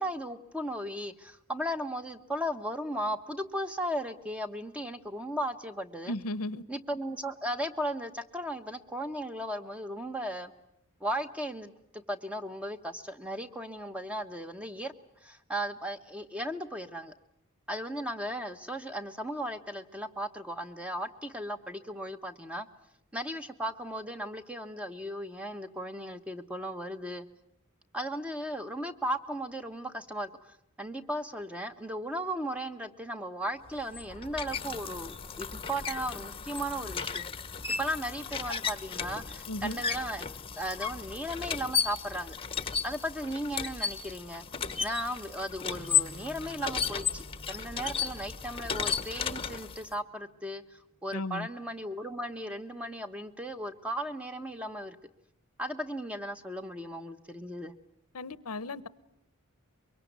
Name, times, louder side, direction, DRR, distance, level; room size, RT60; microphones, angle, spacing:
voice 1, 0.0-6.1 6.7-10.5 11.0-14.9 15.2-17.1 17.7-22.7 23.1-27.3 27.9-37.2 37.8-40.3 40.6-42.3 42.8-44.5 44.8-55.0 55.6-57.7, equal, 5° right, 1.1 m, -36 dB
voice 2, 6.1-6.6 39.5-39.8 51.1-51.5 58.1-58.9, left 2 dB, 85° left, 0.9 m, -35 dB
sound 1, 33.7-49.9, left 7 dB, 25° left, 1.0 m, -34 dB
Strum, 45.6-51.0, right 2 dB, 70° right, 5.2 m, -54 dB
24.0 x 23.0 x 9.4 m
head